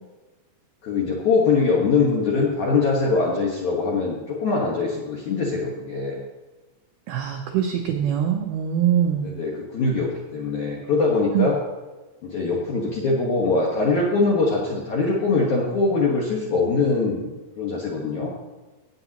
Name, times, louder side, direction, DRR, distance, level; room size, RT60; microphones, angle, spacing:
voice 1, 0.8-6.2 9.2-11.6 12.2-17.3 17.6-18.3, left 4 dB, 65° left, -4 dB, 2.0 m, -22 dB
voice 2, 7.1-9.3 11.3-11.5, right 9 dB, 85° right, 2 dB, 2.2 m, -23 dB
18.0 x 9.0 x 3.0 m, 1.2 s
omnidirectional pair, 5.5 m